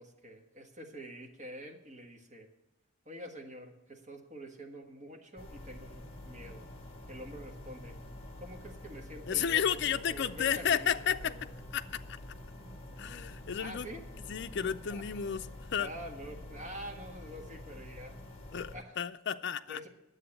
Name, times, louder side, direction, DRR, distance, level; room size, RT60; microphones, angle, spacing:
voice 1, 0.0-2.5 3.0-6.7 7.1-8.0 8.4-11.5 13.6-14.0 14.9-15.1 15.8-18.2 18.7-19.0 19.7-19.9, equal, 40° right, 2 dB, 1.5 m, -47 dB
sound 1, 5.4-18.8, left 1 dB, 30° left, 1.5 m, -47 dB
voice 2, 9.3-11.4 11.7-12.0 13.0-13.9 14.3-15.4 15.7-15.9 18.5-19.8, left 8 dB, 60° left, 8 dB, 0.5 m, -32 dB
9.9 x 7.6 x 8.7 m, 0.95 s
head